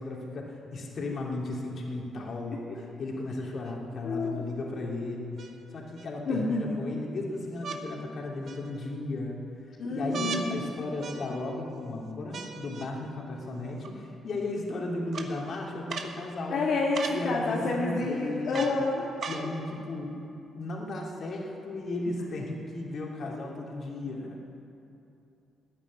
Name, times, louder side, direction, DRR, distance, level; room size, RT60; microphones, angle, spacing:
voice 1, 0.0-5.4 5.7-9.4 9.9-16.7 17.1-18.8 19.3-20.2 20.5-24.4, left 2 dB, 55° left, -1 dB, 2.8 m, -35 dB
sound 1, 3.6-3.7 5.4-6.1 7.6-7.8 8.5-9.0 10.1-10.5 11.0-11.6 12.3-12.9 13.8-13.9 15.1-15.3 15.9-16.1 16.9-17.2 18.5-18.8 19.2-19.5 20.3-20.4, right 4 dB, 55° right, 1.3 m, -38 dB
voice 2, 4.0-4.4 6.3-6.8 9.8-10.6 16.5-19.0, left 3 dB, 70° left, -4 dB, 1.9 m, -29 dB
14.0 x 9.0 x 9.8 m, 2.8 s
cardioid pair, 90°, 0 cm